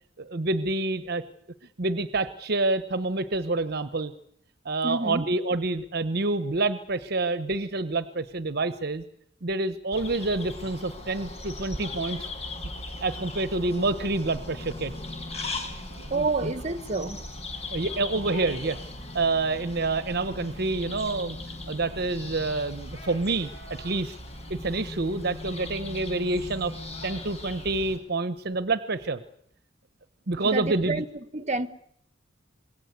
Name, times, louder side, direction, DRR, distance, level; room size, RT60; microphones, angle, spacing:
voice 1, 0.2-1.2 1.8-4.1 4.6-9.0 9.4-12.3 13.0-14.9 16.0-16.5 17.7-18.8 19.1-21.4 21.7-23.5 23.8-24.2 24.5-26.7 27.0-29.2 30.3-31.0, right 2 dB, 60° right, 1.0 m, -27 dB
voice 2, 4.8-5.3 16.0-17.2 17.5-17.7 30.4-31.1 31.3-31.7, right 3 dB, 40° right, 1.4 m, -29 dB
sound 1, 9.9-28.0, left 2 dB, 35° left, 5.5 m, -38 dB
27.0 x 22.0 x 8.2 m
head